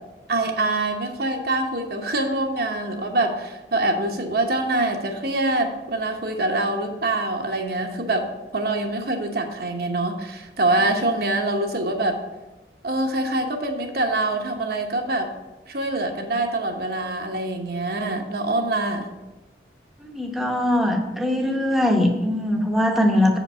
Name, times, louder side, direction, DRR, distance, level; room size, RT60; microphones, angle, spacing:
voice 1, 0.3-12.2 12.8-15.3 15.7-19.1, right 2 dB, 55° right, 3 dB, 1.0 m, -25 dB
voice 2, 20.0-23.4, left 1 dB, ahead, 1 dB, 0.9 m, -21 dB
7.4 x 5.2 x 5.6 m, 1.1 s
head